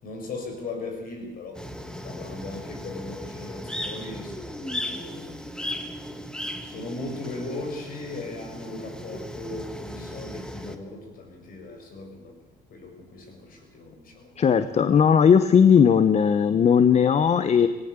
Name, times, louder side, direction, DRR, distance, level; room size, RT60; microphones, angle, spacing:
voice 1, 0.0-1.6 2.0-5.4 6.6-12.4 12.7-14.4, left 2 dB, 55° left, 3 dB, 6.7 m, -38 dB
sound 1, 1.5-10.8, equal, 5° left, 1.8 m, -36 dB
voice 2, 14.4-17.7, left 7 dB, 40° left, 12 dB, 0.9 m, -18 dB
18.5 x 17.5 x 8.3 m, 1.1 s
cardioid pair, 110°, 17 cm